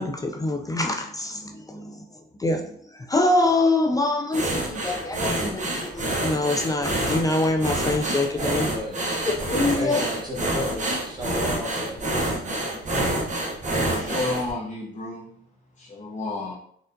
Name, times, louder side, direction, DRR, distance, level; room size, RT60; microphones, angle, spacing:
voice 1, 0.0-2.1 2.4-8.7 9.2-10.1, left 2 dB, 20° left, 3 dB, 0.4 m, -25 dB
sound 1, 4.3-14.5, right 1 dB, 40° right, 0.9 m, -27 dB
voice 2, 8.3-9.2 9.8-12.0, left 1 dB, 20° right, -3 dB, 1.2 m, -32 dB
voice 3, 13.8-15.3 15.8-16.6, left 2 dB, 40° left, -6 dB, 0.8 m, -31 dB
4.2 x 2.4 x 2.6 m, 0.64 s
cardioid pair, 90°, 20 cm